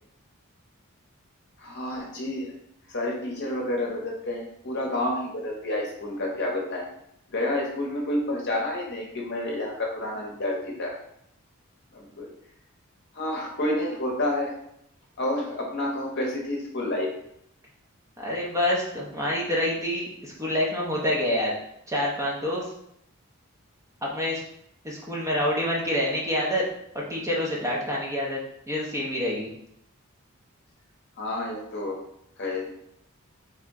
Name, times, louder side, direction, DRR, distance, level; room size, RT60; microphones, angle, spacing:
voice 1, 1.6-2.5 2.9-6.9 7.3-10.9 11.9-12.3 13.1-14.5 15.2-17.1 31.2-32.0 32.4-32.9, left 1 dB, 50° left, -1 dB, 0.8 m, -29 dB
voice 2, 18.2-21.5 21.9-22.7 24.0-24.4 24.8-26.7 26.9-28.4 28.7-29.5, left 1 dB, 15° right, -4 dB, 0.6 m, -27 dB
3.3 x 2.8 x 3.5 m, 0.75 s
head